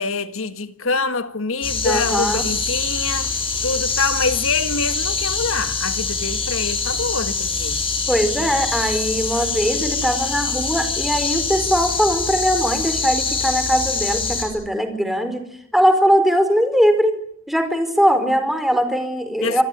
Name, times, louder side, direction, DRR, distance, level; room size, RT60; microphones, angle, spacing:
voice 1, 0.0-7.8 19.4-19.6, left 4 dB, 70° left, 1.7 m, -25 dB
sound 1, 1.6-14.4, left 4 dB, 25° left, 7.1 m, -24 dB
voice 2, 1.8-2.4 8.1-15.4 15.7-17.2 17.5-19.6, equal, ahead, 4.6 m, -20 dB
27.0 x 20.5 x 10.0 m
head